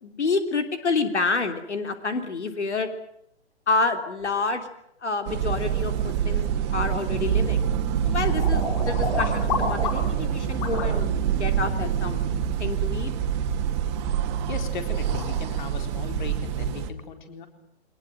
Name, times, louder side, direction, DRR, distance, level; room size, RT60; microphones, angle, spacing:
voice 1, 0.0-2.9 3.7-4.7 5.0-6.4 6.7-7.7 8.0-12.3 12.6-13.1, left 3 dB, 90° left, 7 dB, 3.4 m, -28 dB
sound 1, 5.3-16.9, right 8 dB, 25° right, 1.9 m, -26 dB
sound 2, 7.5-10.2 10.6-10.9 14.4-14.5 14.8-15.3, left 5 dB, 25° left, 7.0 m, -30 dB
voice 2, 14.5-17.5, left 5 dB, 45° left, 7 dB, 4.1 m, -38 dB
23.5 x 20.0 x 9.2 m, 0.75 s
hypercardioid pair, 155°, 33 cm